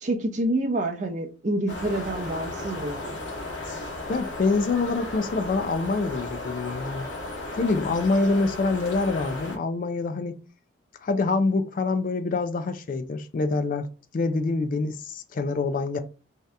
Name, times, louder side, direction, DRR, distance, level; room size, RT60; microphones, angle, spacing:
voice 1, 0.0-3.2, right 1 dB, 40° right, 0.5 m, -28 dB
sound 1, 1.7-9.6, left 2 dB, 75° left, 1.0 m, -35 dB
voice 2, 4.1-7.1 7.6-10.4 11.0-13.9 14.1-16.0, left 3 dB, 45° left, 0.3 m, -25 dB
2.7 x 2.4 x 3.2 m
head